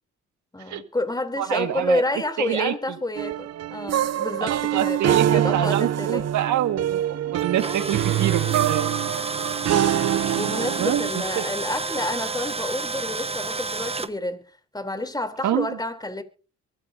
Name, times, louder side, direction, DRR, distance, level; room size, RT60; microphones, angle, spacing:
voice 1, 0.5-6.2 7.5-7.8 10.3-14.4 14.7-16.2, left 2 dB, 15° left, 3.2 m, -29 dB
voice 2, 1.4-2.0 2.4-2.7 4.4-8.9 10.8-11.0 11.4-11.5 15.4-15.8, right 11 dB, 75° right, 1.8 m, -26 dB
sound 1, 3.1-11.1, right 11 dB, 55° right, 0.7 m, -24 dB
Tools, 7.4-14.1, right 4 dB, 20° right, 1.1 m, -30 dB
23.5 x 13.0 x 2.7 m
cardioid pair, 90°, 30 cm